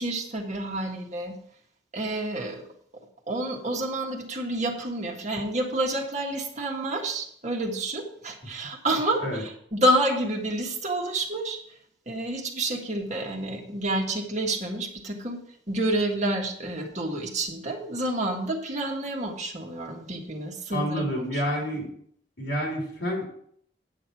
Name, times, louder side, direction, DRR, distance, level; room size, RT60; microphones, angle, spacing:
voice 1, 0.0-1.4 1.9-2.6 3.3-11.6 12.1-15.4 15.7-21.0 21.3-21.4, right 1 dB, 40° right, 1 dB, 1.7 m, -29 dB
voice 2, 20.7-21.9 22.4-23.2, equal, 70° left, 0 dB, 3.5 m, -28 dB
9.0 x 8.7 x 4.6 m, 0.63 s
head